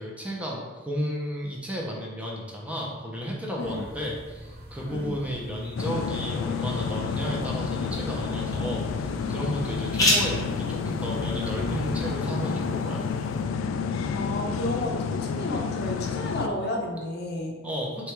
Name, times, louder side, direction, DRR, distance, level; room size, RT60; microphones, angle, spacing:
voice 1, 0.0-13.1 17.6-18.1, equal, 5° right, -3 dB, 0.7 m, -33 dB
sound 1, 3.6-12.1, equal, 55° right, 0.9 m, -41 dB
sound 2, 5.8-16.5, left 5 dB, 80° left, 0.3 m, -30 dB
sound 3, 5.9-13.4, left 1 dB, 20° left, 0.9 m, -33 dB
voice 2, 14.1-17.6, left 1 dB, 55° left, 1 dB, 0.7 m, -32 dB
3.5 x 3.3 x 4.5 m, 1.3 s
head